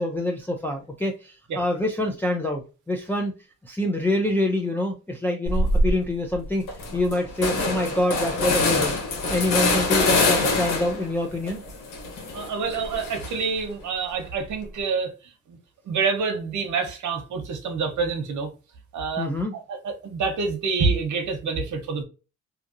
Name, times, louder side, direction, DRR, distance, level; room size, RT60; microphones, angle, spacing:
voice 1, 0.0-3.3 3.6-6.6 6.9-9.0 9.3-11.6 19.2-19.6, left 1 dB, 5° left, 0.5 m, -26 dB
sound 1, 5.5-5.9 6.3-6.4 6.7-11.1 11.5-13.6, left 2 dB, 85° left, 1.1 m, -24 dB
voice 2, 12.3-15.1 15.5-15.6 15.8-18.5 18.9-22.0, right 5 dB, 70° right, 0.9 m, -27 dB
2.8 x 2.6 x 2.5 m
cardioid pair, 85°, 31 cm